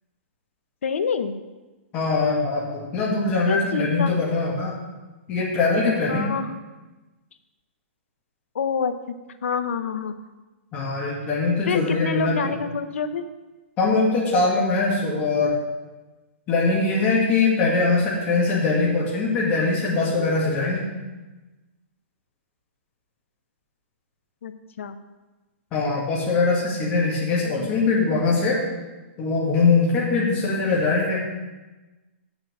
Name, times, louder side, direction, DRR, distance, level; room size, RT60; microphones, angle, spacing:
voice 1, 0.8-1.4 3.5-4.1 6.1-6.6 8.5-9.1 9.4-10.2 11.7-13.3 24.4-25.0 27.4-27.7, left 6 dB, 80° left, 10 dB, 0.9 m, -27 dB
voice 2, 1.9-4.7 5.3-6.3 10.7-12.5 13.8-15.5 16.5-20.9 25.7-28.6 29.2-31.2, left 3 dB, 20° left, -5 dB, 1.9 m, -22 dB
7.5 x 6.6 x 7.3 m, 1.2 s
hypercardioid pair, 170°, 7 cm